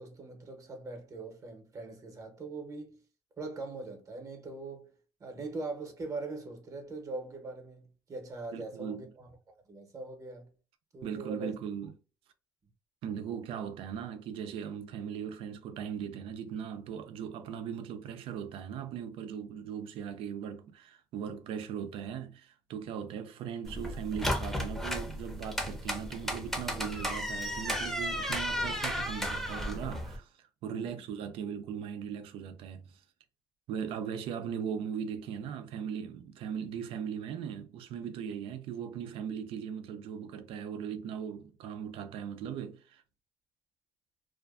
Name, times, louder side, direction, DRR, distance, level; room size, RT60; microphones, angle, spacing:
voice 1, 0.0-3.0 3.4-4.9 5.2-9.3 9.7-10.5 10.9-11.6 30.7-31.0, right 3 dB, 35° right, 0.8 m, -41 dB
voice 2, 8.5-9.0 11.0-11.9 13.0-33.0 33.7-43.0, right 8 dB, 85° right, 0.4 m, -39 dB
sound 1, 23.7-30.2, equal, ahead, 0.6 m, -34 dB
2.5 x 2.1 x 2.3 m
cardioid pair, 100°, 9 cm